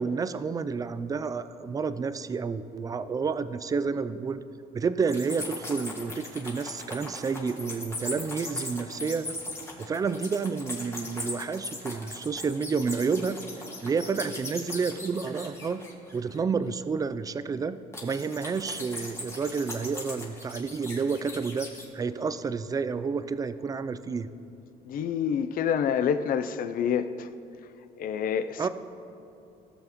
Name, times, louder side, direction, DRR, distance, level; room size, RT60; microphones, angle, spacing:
voice 1, 0.0-4.4 4.7-9.4 9.8-13.4 13.8-15.8 16.1-21.7 21.9-24.3 28.6-28.7, right 5 dB, 20° right, 12 dB, 0.3 m, -30 dB
sound 1, 5.0-16.4 17.9-21.9, left 2 dB, 15° left, 1.7 m, -39 dB
voice 2, 24.8-27.3 28.0-28.7, left 8 dB, 60° left, 12 dB, 0.5 m, -27 dB
17.0 x 7.0 x 3.0 m, 2.7 s
cardioid pair, 110°, 17 cm